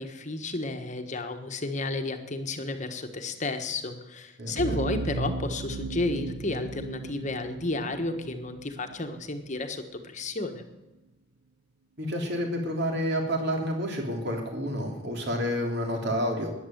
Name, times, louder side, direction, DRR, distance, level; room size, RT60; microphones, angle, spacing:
voice 1, 0.0-10.7, left 2 dB, 35° left, 6 dB, 1.3 m, -32 dB
voice 2, 4.4-4.8 12.0-16.5, equal, 55° right, 2 dB, 3.3 m, -29 dB
sound 1, 4.6-9.4, right 3 dB, 85° right, 0.8 m, -36 dB
13.5 x 10.0 x 7.9 m, 1.1 s
head